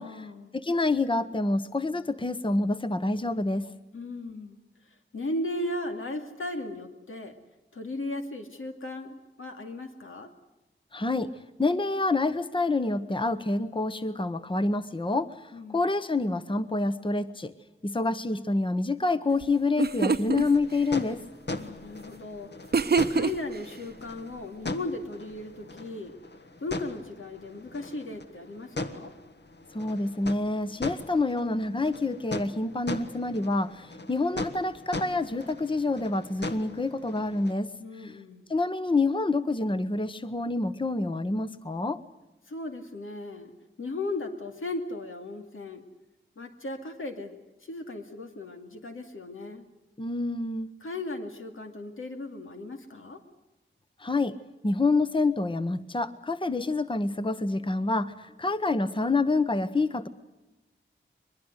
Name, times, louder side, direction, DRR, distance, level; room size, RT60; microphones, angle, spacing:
voice 1, 0.0-0.6 3.9-4.6 5.1-7.4 7.7-10.3 15.5-15.8 21.5-22.5 23.1-26.2 26.6-29.1 37.8-38.5 42.5-43.5 43.8-45.8 46.4-47.4 47.6-49.7 50.8-53.2, left 2 dB, 90° left, 4 dB, 2.5 m, -36 dB
voice 2, 0.5-3.7 10.9-11.3 11.6-17.5 17.8-21.2 29.7-37.7 38.0-38.2 38.5-42.0 50.0-50.7 54.0-54.3 54.6-60.1, left 3 dB, 25° left, 12 dB, 0.9 m, -27 dB
sound 1, 19.4-19.5 19.8-20.4 22.7-23.6, right 5 dB, 50° right, 0.7 m, -24 dB
sound 2, 20.3-37.5, left 2 dB, 60° left, 1.5 m, -39 dB
22.5 x 21.5 x 8.0 m, 1.0 s
wide cardioid pair, 90°, 20 cm